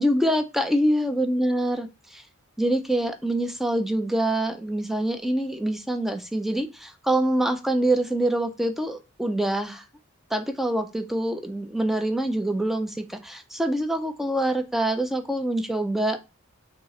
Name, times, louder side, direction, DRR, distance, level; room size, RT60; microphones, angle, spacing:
voice 1, 0.0-2.2 2.6-9.8 10.3-16.2, right 1 dB, ahead, 0.3 m, -25 dB
3.8 x 2.4 x 4.0 m
head